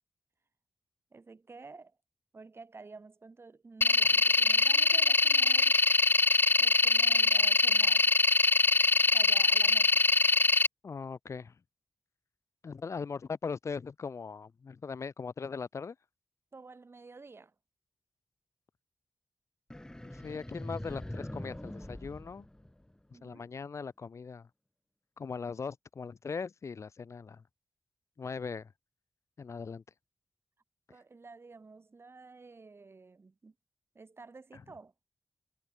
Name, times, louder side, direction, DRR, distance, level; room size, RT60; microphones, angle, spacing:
voice 1, 1.1-2.0 2.3-5.8 6.6-8.1 9.1-10.0 16.5-17.5 23.1-23.5 30.9-33.5 33.9-34.9, right 3 dB, 50° right, 4.4 m, -51 dB
sound 1, 3.8-10.7, left 3 dB, 40° left, 0.6 m, -23 dB
voice 2, 10.8-11.5 12.6-16.0 20.1-22.5 23.2-24.5 25.2-27.4 28.2-28.7 29.4-29.8 34.5-34.6, left 5 dB, 70° left, 3.6 m, -39 dB
sound 2, 19.7-23.2, left 1 dB, 15° left, 1.5 m, -43 dB
cardioid pair, 50°, 5 cm